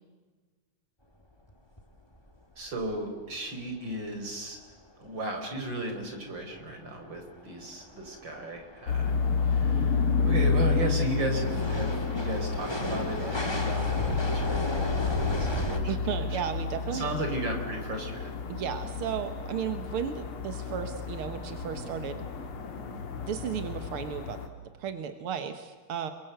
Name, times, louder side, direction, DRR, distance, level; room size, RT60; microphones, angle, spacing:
sound 1, 1.5-1.6 1.8-1.9 2.1-2.4 2.8-2.9 6.0-6.1 6.6-15.8, left 1 dB, 10° left, 1.3 m, -35 dB
voice 1, 2.6-4.6 5.0-9.1 9.4-16.4 16.9-18.3, right 2 dB, 30° right, 5 dB, 4.7 m, -35 dB
sound 2, 8.9-24.5, left 5 dB, 45° left, 2.6 m, -30 dB
voice 2, 15.9-17.1 18.5-22.2 23.3-24.4 24.8-26.1, right 8 dB, 60° right, 8 dB, 1.5 m, -34 dB
28.0 x 23.0 x 8.0 m, 1.4 s
omnidirectional pair, 3.9 m